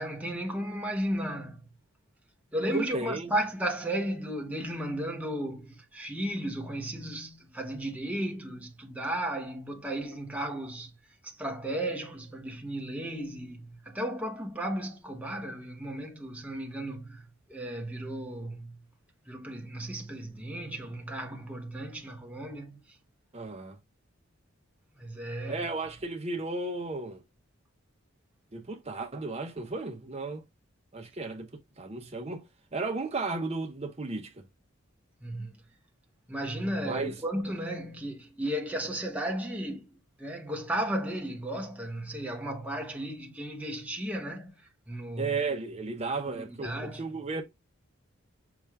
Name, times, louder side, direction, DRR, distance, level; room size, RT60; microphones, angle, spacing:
voice 1, 0.0-1.7 2.5-10.9 11.2-18.8 19.3-22.8 25.0-25.7 35.2-35.5 36.3-39.9 40.2-45.4 46.3-47.0, right 1 dB, 5° right, 1.0 m, -34 dB
voice 2, 2.7-3.3 23.3-23.8 25.5-27.2 28.5-30.4 30.9-31.5 31.8-32.5 32.7-34.4 36.8-37.2 45.2-47.4, right 3 dB, 30° right, 0.9 m, -34 dB
6.0 x 2.6 x 3.4 m
head